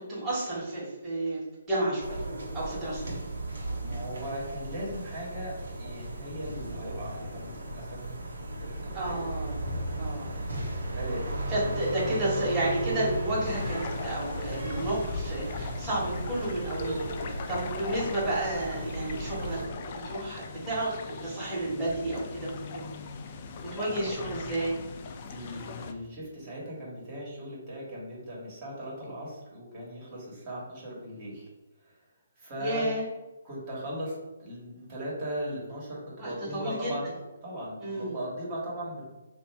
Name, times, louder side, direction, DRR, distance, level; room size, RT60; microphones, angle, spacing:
voice 1, 0.0-1.4 1.7-2.2 2.5-3.0 8.9-9.6 10.0-10.3 11.5-19.6 19.9-22.5 23.7-24.8 32.6-33.0 36.2-36.9 37.8-38.1, right 1 dB, 15° right, -9 dB, 1.4 m, -31 dB
sound 1, 2.0-19.7, right 1 dB, 65° right, 1.1 m, -36 dB
voice 2, 3.8-8.1 8.6-9.2 10.2-11.4 11.7-11.8 23.9-24.0 25.2-31.5 31.8-31.9 32.4-32.9 33.4-37.1 37.4-39.0, equal, 35° right, -6 dB, 1.4 m, -38 dB
sound 2, 13.4-25.9, left 4 dB, 35° left, 0.4 m, -40 dB
3.1 x 2.5 x 4.4 m, 1.1 s
figure-of-eight pair, 135°, 0 cm